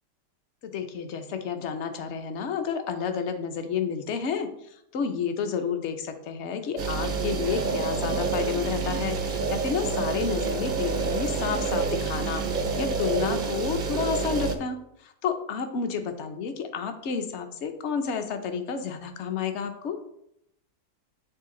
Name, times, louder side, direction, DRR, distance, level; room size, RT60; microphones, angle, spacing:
voice 1, 0.6-4.5 4.9-12.4 12.8-20.0, left 6 dB, 55° left, 7 dB, 0.8 m, -30 dB
sound 1, 6.8-14.6, right 4 dB, 65° right, 0.5 m, -28 dB
9.6 x 3.4 x 3.8 m, 0.77 s
omnidirectional pair, 1.8 m